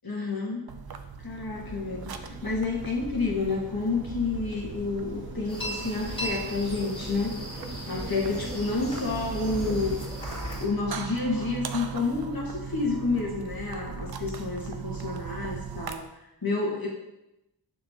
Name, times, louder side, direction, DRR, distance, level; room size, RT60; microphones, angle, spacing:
voice 1, 0.0-0.7 1.2-7.4 7.9-10.0 10.6-16.0 16.4-16.9, left 3 dB, 55° left, -3 dB, 1.7 m, -29 dB
sound 1, 0.7-15.9, right 6 dB, 60° right, 0.6 m, -40 dB
sound 2, 1.5-10.0, right 2 dB, 30° right, 1.0 m, -42 dB
sound 3, 5.5-10.7, equal, 10° left, 2.5 m, -37 dB
6.7 x 5.8 x 2.9 m, 0.90 s
wide cardioid pair, 70°, 43 cm